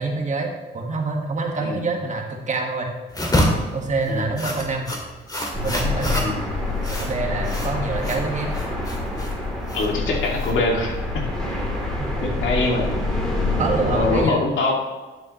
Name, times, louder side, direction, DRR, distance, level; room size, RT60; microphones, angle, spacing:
voice 1, 0.0-2.9 3.7-4.9 5.6-6.3 7.0-8.6 11.7-12.1 13.6-14.4, right 3 dB, 40° right, 2 dB, 1.6 m, -26 dB
sound 1, 3.1-11.0, equal, 20° left, 2.2 m, -28 dB
sound 2, 5.5-14.2, left 2 dB, 5° left, 3.1 m, -26 dB
voice 2, 9.7-11.2 12.2-12.9 13.9-14.7, left 2 dB, 75° left, 0 dB, 2.2 m, -23 dB
11.5 x 7.0 x 3.1 m, 1.2 s
cardioid pair, 90°, 20 cm